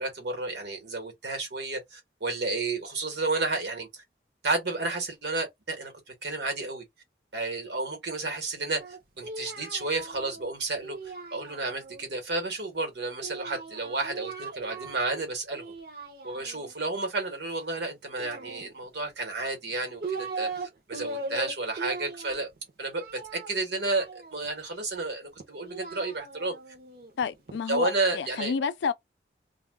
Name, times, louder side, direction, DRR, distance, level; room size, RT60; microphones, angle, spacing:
voice 1, 0.0-4.0 4.4-6.8 7.3-11.0 11.3-15.7 16.2-22.5 22.8-23.0 23.3-26.5 27.7-28.5, right 3 dB, 75° right, 1.2 m, -31 dB
Singing, 8.8-12.0 13.2-15.2 15.5-16.7 18.1-19.1 19.7-20.7 20.9-24.6 25.4-27.6, right 3 dB, 55° right, 0.7 m, -39 dB
voice 2, 27.2-28.9, left 6 dB, 85° left, 0.4 m, -30 dB
2.4 x 2.2 x 3.3 m
head